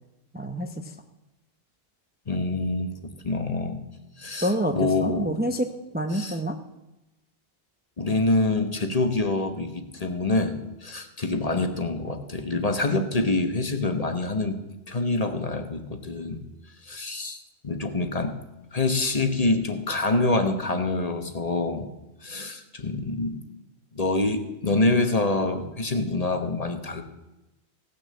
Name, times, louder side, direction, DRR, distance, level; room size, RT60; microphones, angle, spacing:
voice 1, 0.3-0.9 4.4-6.6, equal, 10° right, 5 dB, 0.7 m, -28 dB
voice 2, 2.3-2.9 3.2-3.8 4.2-5.3 6.1-6.4 8.0-14.6 14.9-16.4 16.8-18.4 18.7-21.9 22.2-23.4 23.9-27.0, left 2 dB, 35° left, 7 dB, 1.1 m, -26 dB
17.0 x 6.4 x 7.6 m, 0.96 s
omnidirectional pair, 1.2 m